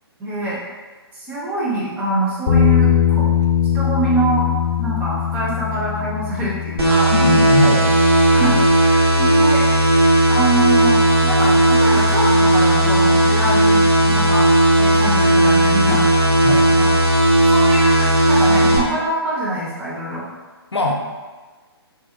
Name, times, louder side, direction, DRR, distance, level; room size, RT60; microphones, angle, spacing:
voice 1, 0.2-0.6 1.1-3.3 3.7-4.5 4.8-7.2 8.3-9.6 10.3-16.0 16.8-16.9 17.4-20.3, right 2 dB, 10° right, -6 dB, 0.5 m, -24 dB
Bass guitar, 2.5-8.7, left 9 dB, 45° left, 0.6 m, -21 dB
sound 1, 6.8-18.8, right 1 dB, 70° right, 0.8 m, -15 dB
voice 2, 7.1-7.8 16.4-16.7 20.7-20.9, left 3 dB, 85° left, 1 dB, 0.5 m, -19 dB
2.8 x 2.8 x 2.3 m, 1.3 s
figure-of-eight pair, 130°, 14 cm